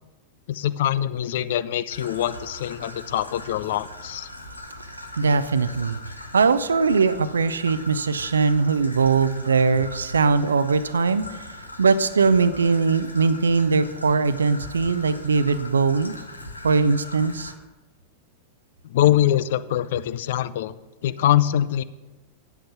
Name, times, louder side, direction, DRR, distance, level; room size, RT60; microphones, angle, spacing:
voice 1, 0.5-4.3 18.9-20.7 21.0-21.8, left 12 dB, 55° left, 16 dB, 0.4 m, -23 dB
Traffic noise roadway noise / Trickle dribble, 1.9-17.5, left 1 dB, 85° left, 0.9 m, -40 dB
voice 2, 5.2-6.0 6.3-11.2 11.8-16.1 16.6-17.5, right 4 dB, 70° right, 14 dB, 0.5 m, -20 dB
8.7 x 8.0 x 5.8 m, 1.1 s
figure-of-eight pair, 90°, 0 cm